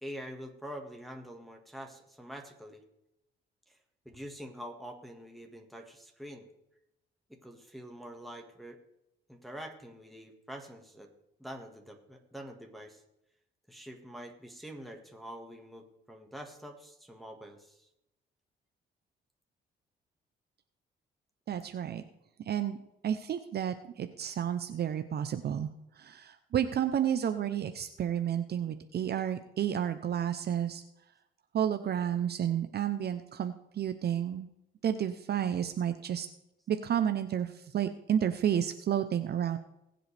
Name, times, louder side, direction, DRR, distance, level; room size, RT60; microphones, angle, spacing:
voice 1, 0.0-2.8 3.7-3.8 4.0-6.5 7.3-8.8 9.3-11.1 11.4-13.0 13.7-17.9, equal, ahead, 1 dB, 1.8 m, -45 dB
voice 2, 21.5-22.0 22.5-22.8 23.0-25.7 26.0-30.8 31.5-34.5 34.8-36.3 36.7-39.6, right 9 dB, 55° right, 9 dB, 0.7 m, -31 dB
20.0 x 7.7 x 3.4 m, 0.85 s
cardioid pair, 90°, 20 cm